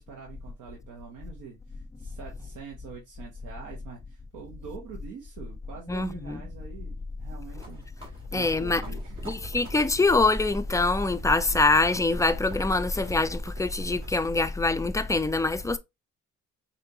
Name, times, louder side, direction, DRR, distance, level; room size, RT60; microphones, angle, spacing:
voice 1, 0.0-9.4, right 6 dB, 85° right, 1.1 m, -44 dB
voice 2, 5.9-6.4 8.3-8.8 9.3-15.8, left 3 dB, 10° left, 0.4 m, -24 dB
sound 1, 7.5-14.1, right 1 dB, 45° right, 2.1 m, -39 dB
5.1 x 2.7 x 2.8 m
cardioid pair, 90°, 30 cm